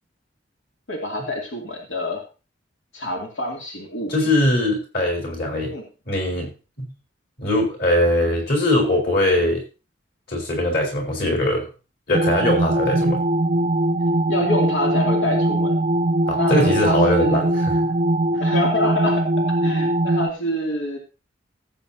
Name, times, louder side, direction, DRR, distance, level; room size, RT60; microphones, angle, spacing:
voice 1, 0.9-2.2 2.9-4.1 5.7-5.9 14.0-15.8 16.4-17.5 18.4-21.0, left 1 dB, 90° left, 0 dB, 2.6 m, -27 dB
voice 2, 4.1-5.7 6.1-6.5 6.8-6.9 7.4-9.6 10.3-11.7 12.1-13.2 16.3-17.8, left 1 dB, 50° left, 1 dB, 4.6 m, -21 dB
sound 1, 12.1-20.3, right 1 dB, 30° right, 0.5 m, -21 dB
17.0 x 8.1 x 2.8 m, 0.32 s
head